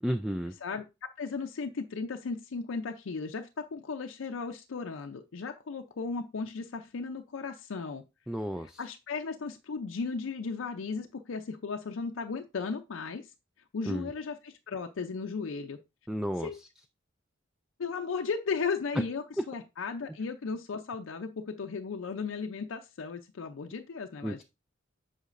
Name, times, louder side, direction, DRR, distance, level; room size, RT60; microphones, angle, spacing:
voice 1, 0.0-0.5 8.3-8.8 13.9-14.1 16.1-16.5 24.2-24.4, equal, 5° right, 7 dB, 0.3 m, -32 dB
voice 2, 0.6-8.0 8.6-13.3 13.7-15.8 16.4-16.6 17.8-24.4, left 4 dB, 90° left, 5 dB, 0.5 m, -36 dB
8.1 x 5.7 x 2.5 m, 0.26 s
head